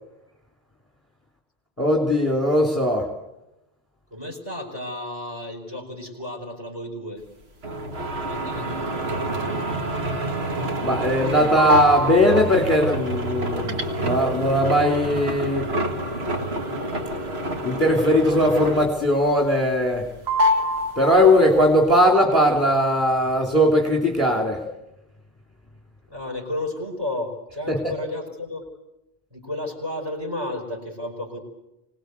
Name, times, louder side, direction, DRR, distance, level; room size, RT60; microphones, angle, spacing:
voice 1, 1.8-3.1 10.8-15.7 17.6-20.1 21.0-24.6 27.7-27.8, equal, 15° left, 1 dB, 2.8 m, -19 dB
voice 2, 4.1-7.2 8.2-8.8 26.1-28.6 29.3-31.4, left 1 dB, 20° right, 2 dB, 5.2 m, -32 dB
sound 1, 7.6-19.1 19.4-20.0 20.3-21.6, equal, 75° right, 2.0 m, -26 dB
25.5 x 19.0 x 8.1 m, 0.93 s
omnidirectional pair, 1.1 m